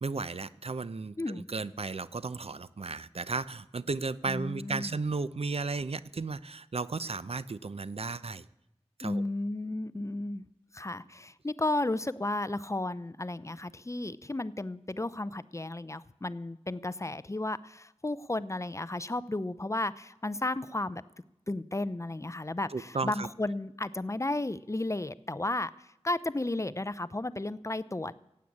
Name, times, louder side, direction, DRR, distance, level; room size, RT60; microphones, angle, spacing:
voice 1, 0.0-8.4 9.0-9.2 22.7-23.3, right 3 dB, 65° right, 15 dB, 0.6 m, -34 dB
voice 2, 4.3-5.0 9.0-10.5 10.7-21.0 21.5-28.1, left 2 dB, 30° left, 16 dB, 0.5 m, -33 dB
16.0 x 8.6 x 8.5 m, 0.88 s
wide cardioid pair, 50°, 11 cm